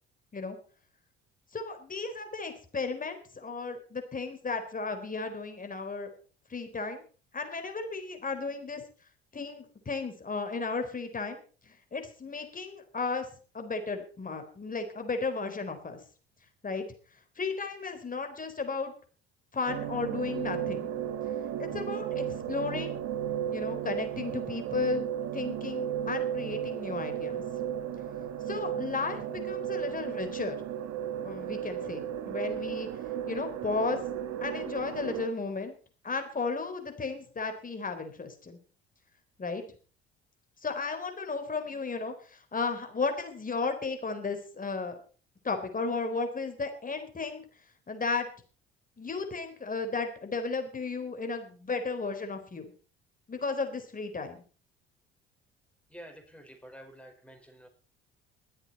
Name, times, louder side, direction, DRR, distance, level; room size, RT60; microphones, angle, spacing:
voice 1, 1.5-6.1 6.5-7.0 7.3-8.8 9.3-13.3 13.5-16.0 16.6-16.8 17.4-18.9 19.5-20.9 21.6-23.0 23.5-25.1 25.3-27.4 28.5-30.6 31.2-32.9 33.3-34.0 34.4-35.7 36.0-38.6 39.4-39.6 40.6-45.0 45.4-47.5 47.9-48.3 49.0-52.7 53.3-54.4, left 4 dB, 30° left, 7 dB, 4.0 m, -34 dB
sound 1, 19.7-35.3, right 10 dB, 55° right, 1.4 m, -34 dB
voice 2, 55.9-57.7, equal, 5° left, 4 dB, 5.3 m, -49 dB
23.0 x 8.2 x 4.5 m, 0.38 s
hypercardioid pair, 60°, 30 cm